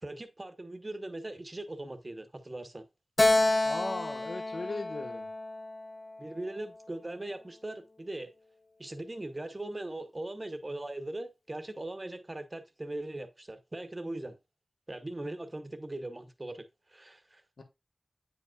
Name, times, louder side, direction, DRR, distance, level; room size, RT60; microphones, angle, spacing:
voice 1, 0.0-2.8 6.2-8.3 8.8-14.4 14.9-17.4, right 1 dB, 30° right, 0.8 m, -40 dB
Keyboard (musical), 3.2-6.6, left 2 dB, 40° left, 0.4 m, -29 dB
voice 2, 3.6-5.3 17.6-17.7, left 2 dB, 70° left, 1.1 m, -38 dB
8.6 x 5.1 x 2.3 m
wide cardioid pair, 95°, 0 cm